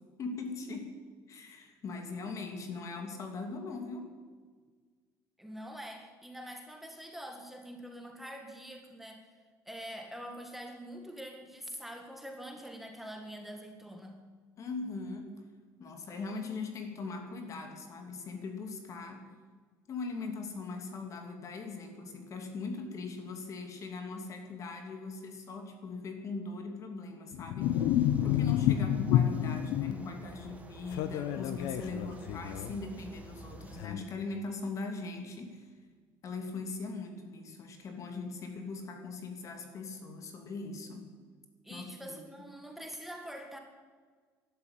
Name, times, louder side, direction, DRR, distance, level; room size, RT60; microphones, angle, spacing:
voice 1, 0.2-1.0 1.3-4.1 14.6-15.3 15.8-19.3 19.9-27.9 28.2-35.6 36.2-41.1 41.7-42.2, left 3 dB, 45° left, 5 dB, 3.0 m, -40 dB
voice 2, 5.4-14.2 41.6-43.6, equal, 5° right, 3 dB, 2.0 m, -45 dB
sound 1, 27.3-29.9 30.9-32.8 33.8-34.0, left 11 dB, 80° left, 0.9 m, -29 dB
sound 2, 27.6-33.9, right 3 dB, 20° right, 1.9 m, -50 dB
12.0 x 12.0 x 9.1 m, 1.6 s
cardioid pair, 105°, 7 cm